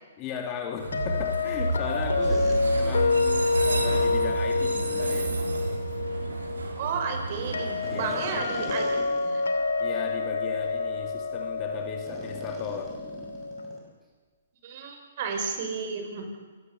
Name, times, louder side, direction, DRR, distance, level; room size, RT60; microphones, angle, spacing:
voice 1, 0.2-2.5 2.7-5.4 7.9-8.4 9.8-13.0, left 7 dB, 30° left, 4 dB, 2.5 m, -36 dB
Train, 0.8-8.8, right 3 dB, 85° right, 4.7 m, -31 dB
sound 1, 0.9-13.8, left 3 dB, 85° left, 3.0 m, -28 dB
sound 2, 2.2-2.6 4.6-5.3 7.8-9.5 9.9-10.0 10.6-10.8 12.1-13.9, right 1 dB, 15° right, 6.2 m, -41 dB
voice 2, 2.4-2.9 6.8-9.5 14.6-16.3, right 5 dB, 50° right, 4 dB, 5.5 m, -33 dB
28.0 x 18.0 x 6.9 m, 1.4 s
hypercardioid pair, 135°, 0 cm